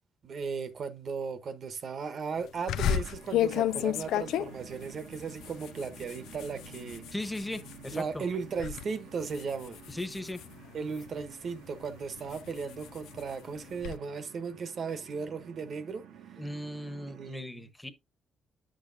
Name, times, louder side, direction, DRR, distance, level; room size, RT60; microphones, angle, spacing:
voice 1, 0.2-7.0 7.9-9.8 10.7-16.0 17.1-17.7, right 5 dB, 55° right, 1.1 m, -36 dB
sound 1, 2.7-8.0 8.4-8.8 9.2-11.2 11.8-14.0, left 11 dB, 85° left, 0.4 m, -33 dB
sound 2, 2.8-17.3, right 7 dB, 80° right, 1.1 m, -52 dB
voice 2, 7.1-8.3 9.9-10.4 16.4-17.9, left 1 dB, 5° left, 1.2 m, -37 dB
9.5 x 6.4 x 2.6 m
cardioid pair, 90°, 0 cm